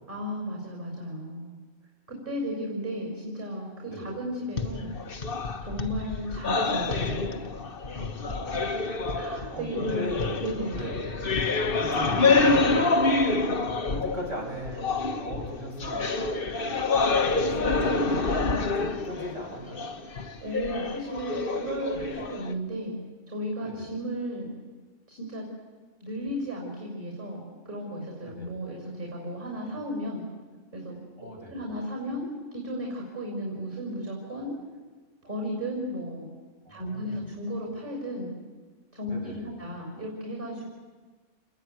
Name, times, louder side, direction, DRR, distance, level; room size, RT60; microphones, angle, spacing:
voice 1, 0.1-1.5 2.1-4.9 5.6-7.4 9.1-10.9 20.4-22.9 23.3-24.5 25.1-25.5 26.0-30.2 30.7-31.0 31.5-34.5 35.2-36.3 36.7-38.3 38.9-40.6, equal, 35° right, -1 dB, 6.3 m, -34 dB
sound 1, 4.6-14.3 14.6-22.5, left 3 dB, 40° left, 1.4 m, -27 dB
voice 2, 8.0-8.4 9.5-10.4 10.7-11.3 11.8-13.1 13.6-16.4 17.3-19.9 22.2-22.3 23.6-23.9 28.2-28.5 31.2-31.6 36.6-37.2 39.1-39.5, equal, 55° right, -2 dB, 8.5 m, -38 dB
29.0 x 20.5 x 9.5 m, 1.4 s
omnidirectional pair, 1.6 m